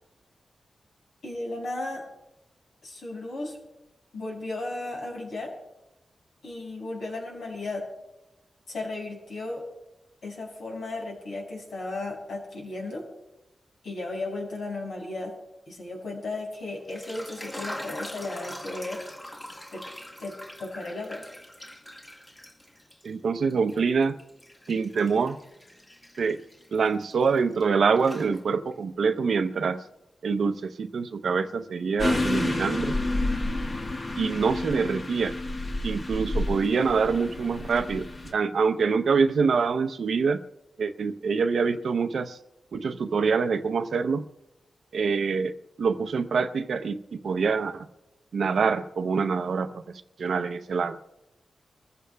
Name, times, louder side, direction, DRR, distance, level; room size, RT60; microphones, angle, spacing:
voice 1, 1.2-2.1 2.8-3.6 4.1-5.5 6.4-7.9 8.7-9.6 10.2-13.1 13.8-15.3 15.7-19.0 19.7-19.8 20.2-21.2, left 2 dB, 80° left, -1 dB, 5.5 m, -35 dB
sound 1, 16.7-23.1 23.5-27.6 28.0-28.8, left 1 dB, 20° left, 1.7 m, -43 dB
voice 2, 23.0-24.2 24.7-25.4 26.2-26.4 26.7-29.8 30.2-32.9 34.2-35.3 35.8-38.1 38.3-40.4 40.8-42.4 42.7-44.2 44.9-47.0 47.2-47.8 48.3-49.8 50.2-51.0, right 5 dB, 75° right, 10 dB, 0.7 m, -25 dB
sound 2, 32.0-38.3, left 2 dB, 40° left, 1.5 m, -29 dB
29.0 x 15.0 x 2.3 m, 0.94 s
wide cardioid pair, 95°, 0 cm